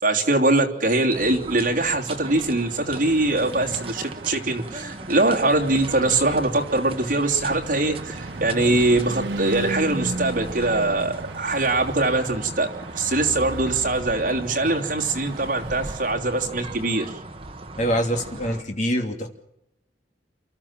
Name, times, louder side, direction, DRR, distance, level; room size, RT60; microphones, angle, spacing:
voice 1, 0.0-12.7 12.9-17.1, right 2 dB, 50° right, 0 dB, 3.1 m, -22 dB
sound 1, 1.1-18.6, right 2 dB, 35° right, 1.5 m, -38 dB
Car passing by / Truck, 2.0-16.1, right 2 dB, 85° right, 1.2 m, -36 dB
voice 2, 17.8-19.3, equal, 45° left, 3 dB, 2.9 m, -24 dB
29.5 x 13.5 x 7.5 m, 0.85 s
head